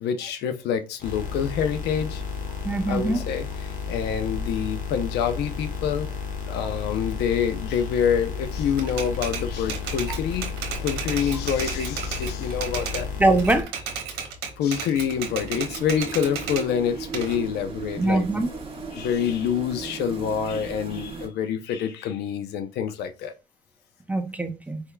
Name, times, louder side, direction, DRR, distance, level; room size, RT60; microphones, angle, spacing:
voice 1, 0.0-2.2 2.9-3.5 3.9-6.1 6.5-10.5 10.8-13.1 14.6-18.2 18.9-23.3, left 8 dB, 75° left, 0.7 m, -26 dB
sound 1, 1.0-13.6, left 5 dB, 45° left, 1.4 m, -32 dB
voice 2, 2.6-3.2 10.1-10.2 13.2-13.7 18.0-18.5 24.1-24.8, right 2 dB, 10° right, 0.6 m, -22 dB
Typewriter, 8.8-13.1 13.4-16.7 17.1-18.8, right 7 dB, 80° right, 1.1 m, -34 dB
sound 2, 14.8-21.3, right 4 dB, 35° right, 1.4 m, -37 dB
4.6 x 3.4 x 2.3 m
cardioid pair, 110°, 17 cm